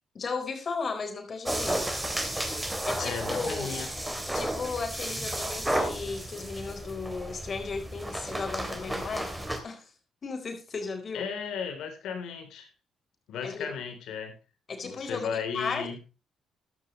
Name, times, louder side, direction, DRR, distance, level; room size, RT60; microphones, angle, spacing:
voice 1, 0.1-1.9 2.9-3.9 4.3-9.4 9.6-9.9 10.2-11.3 13.4-13.7 14.7-16.0, left 4 dB, 45° left, 6 dB, 4.0 m, -35 dB
sound 1, 1.4-9.6, right 1 dB, 10° right, 3.2 m, -32 dB
voice 2, 3.0-3.9 11.1-12.7 13.3-14.3 14.8-16.0, left 7 dB, 80° left, 7 dB, 3.5 m, -35 dB
14.5 x 11.5 x 3.2 m, 0.31 s
cardioid pair, 90°, 0 cm